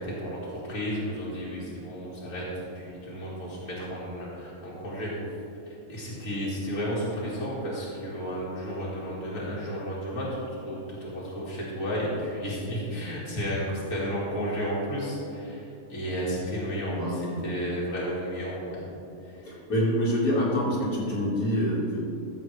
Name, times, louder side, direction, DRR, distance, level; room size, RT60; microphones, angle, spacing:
voice 1, 0.0-2.5 2.7-5.1 5.9-10.3 10.5-15.6 15.9-18.8, equal, 65° left, -6 dB, 2.3 m, -32 dB
voice 2, 16.9-17.4 19.4-22.0, equal, 85° left, -6 dB, 2.4 m, -26 dB
13.5 x 7.0 x 3.3 m, 2.7 s
omnidirectional pair, 1.5 m